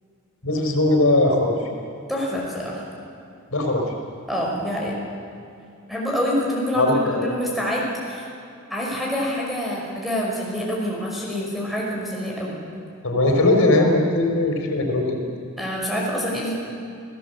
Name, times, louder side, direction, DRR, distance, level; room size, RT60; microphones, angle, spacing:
voice 1, 0.4-1.6 3.5-3.9 6.8-7.3 13.0-15.2, left 2 dB, 85° left, 2 dB, 4.1 m, -19 dB
voice 2, 2.1-2.8 4.3-4.9 5.9-8.3 8.7-12.6 15.6-16.5, equal, ahead, -4 dB, 5.8 m, -26 dB
29.0 x 17.0 x 7.9 m, 2.4 s
head